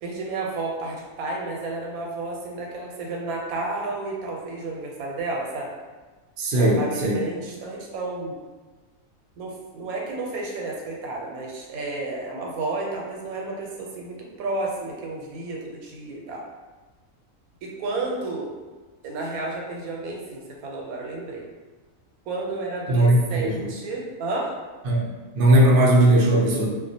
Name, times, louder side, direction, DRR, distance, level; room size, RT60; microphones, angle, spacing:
voice 1, 0.0-5.7 6.6-8.4 9.4-16.4 17.6-18.5 19.0-21.4 22.3-24.5, right 3 dB, 90° right, -1 dB, 1.0 m, -31 dB
voice 2, 6.4-7.2 22.9-23.7 24.9-25.0 25.3-26.7, right 1 dB, 65° right, -3 dB, 0.5 m, -18 dB
2.3 x 2.1 x 2.6 m, 1.3 s
omnidirectional pair, 1.5 m